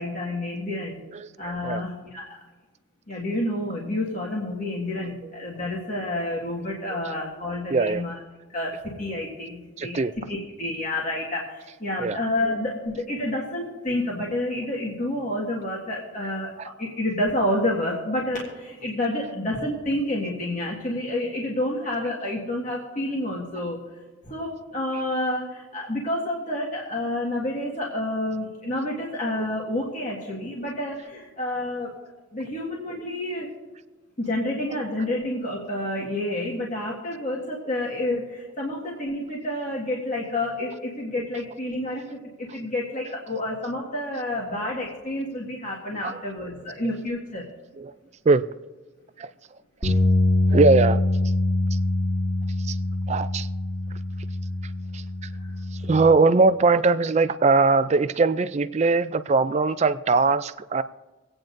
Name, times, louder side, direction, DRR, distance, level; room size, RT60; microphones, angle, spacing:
voice 1, 0.0-1.0 1.4-2.4 3.1-8.2 8.5-10.0 10.3-16.5 16.8-23.8 24.2-31.9 32.3-33.5 34.2-47.4 55.4-55.5, left 1 dB, 40° left, -3 dB, 1.7 m, -29 dB
voice 2, 1.1-1.9 5.2-5.3 6.9-7.0 7.7-8.1 9.8-10.1 12.0-12.5 16.6-16.7 46.0-46.2 47.8-47.9 48.3-48.5 49.2-49.3 49.8-49.9 50.5-51.0 51.7-51.8 52.6-52.8 53.1-53.5 54.9-55.0 55.7-60.8, right 3 dB, 30° right, 14 dB, 0.3 m, -21 dB
sound 1, 49.8-56.1, left 2 dB, 5° left, 1.8 m, -24 dB
26.0 x 8.8 x 2.6 m, 1.3 s
head